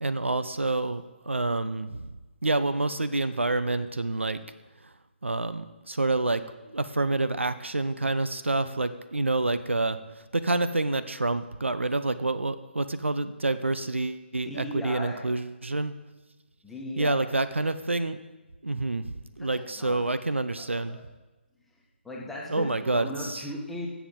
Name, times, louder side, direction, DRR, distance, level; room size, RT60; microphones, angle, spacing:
voice 1, 0.0-2.0 2.4-4.4 5.2-6.4 6.7-10.0 10.3-15.9 17.0-18.2 18.6-19.1 19.4-21.0 22.5-23.4, right 2 dB, 80° right, 12 dB, 0.6 m, -28 dB
voice 2, 14.4-15.2 16.6-17.2 19.4-20.0 20.6-21.0 22.0-23.9, left 1 dB, ahead, -4 dB, 1.3 m, -37 dB
16.5 x 7.0 x 3.9 m, 1.1 s
figure-of-eight pair, 145°, 6 cm